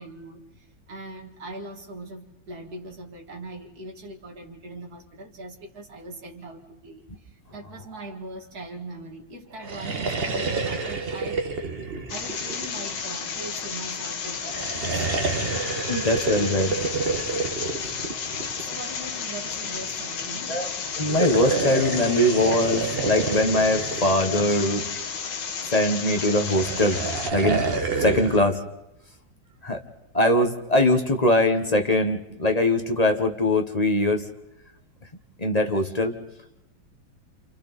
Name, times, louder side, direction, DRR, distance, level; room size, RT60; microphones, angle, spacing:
voice 1, 0.0-11.5 12.1-15.1 15.5-15.7 18.3-20.7, right 2 dB, 50° right, 2 dB, 2.6 m, -41 dB
sound 1, 9.5-13.2 14.5-18.8 21.0-25.0 26.3-28.5, right 3 dB, 35° right, 1.3 m, -29 dB
sound 2, 12.1-27.3, left 6 dB, 65° left, 1.9 m, -32 dB
voice 2, 15.9-16.7 20.5-20.7 21.0-24.9 25.7-27.0 27.3-27.6 28.0-28.6 29.6-29.8 30.1-34.2 35.4-36.2, left 1 dB, 25° left, 5 dB, 1.1 m, -22 dB
28.0 x 28.0 x 4.1 m, 0.87 s
omnidirectional pair, 2.2 m